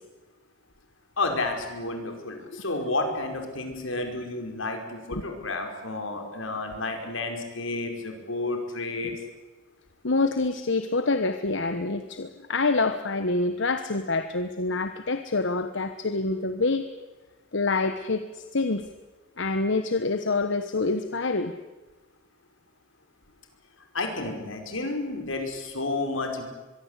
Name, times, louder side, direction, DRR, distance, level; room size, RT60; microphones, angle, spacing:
voice 1, 1.2-9.1 23.9-26.5, left 2 dB, 85° left, 4 dB, 5.4 m, -31 dB
voice 2, 10.0-16.9 17.5-18.9 19.4-21.5, left 3 dB, 65° left, 8 dB, 1.2 m, -26 dB
24.5 x 22.5 x 8.3 m, 1.2 s
head